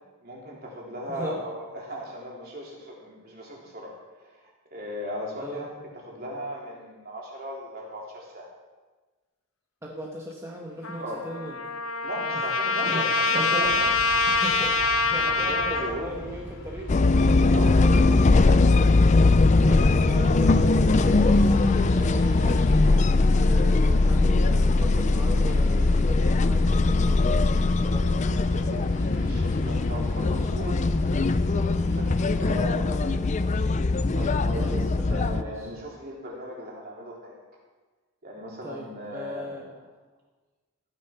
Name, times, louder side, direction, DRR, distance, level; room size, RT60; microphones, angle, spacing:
voice 1, 0.2-4.0 4.2-5.8 6.0-8.5 11.0-11.2 12.0-14.2 15.2-16.2 17.4-18.3 28.1-37.4 38.2-39.7, equal, 45° right, -2 dB, 3.5 m, -37 dB
voice 2, 1.1-1.4 5.4-5.6 9.8-11.6 12.3-12.5 12.9-14.8 15.1-18.0 19.6-23.1 23.4-27.5 27.8-28.1 30.1-30.5 32.3-32.5 34.4-35.7 38.6-39.6, right 1 dB, 15° right, -2 dB, 1.3 m, -38 dB
Trumpet, 10.8-16.0, left 3 dB, 85° left, 1.1 m, -25 dB
sound 1, 13.6-32.6, equal, 60° left, 2.9 m, -40 dB
sound 2, 16.9-35.4, left 3 dB, 35° left, 0.4 m, -21 dB
14.5 x 10.0 x 5.9 m, 1.3 s
head